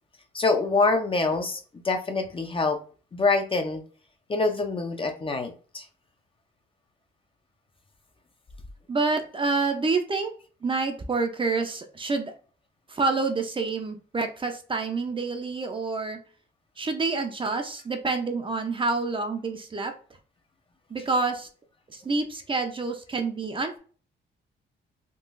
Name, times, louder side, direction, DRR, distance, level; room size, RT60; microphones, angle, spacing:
voice 1, 0.3-1.6 1.8-2.8 3.1-3.8 4.3-5.8, left 3 dB, 25° left, 5 dB, 0.6 m, -25 dB
voice 2, 8.9-10.3 10.6-12.3 12.9-16.2 16.8-19.9 20.9-21.5 21.9-23.8, right 3 dB, 25° right, 5 dB, 0.6 m, -28 dB
3.7 x 2.4 x 2.5 m, 0.40 s
cardioid pair, 90°, 20 cm